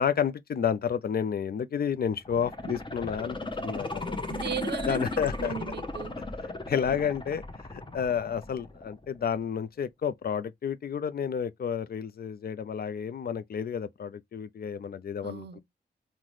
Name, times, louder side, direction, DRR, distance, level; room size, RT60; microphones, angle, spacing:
voice 1, 0.0-4.2 4.9-5.5 6.4-7.4 7.7-15.6, left 7 dB, 60° left, 0.4 m, -31 dB
sound 1, 2.2-9.2 9.6-9.7, left 2 dB, 25° left, 0.8 m, -36 dB
voice 2, 4.3-6.2 15.2-15.6, right 7 dB, 65° right, 0.5 m, -37 dB
3.8 x 2.1 x 3.0 m
cardioid pair, 50°, 18 cm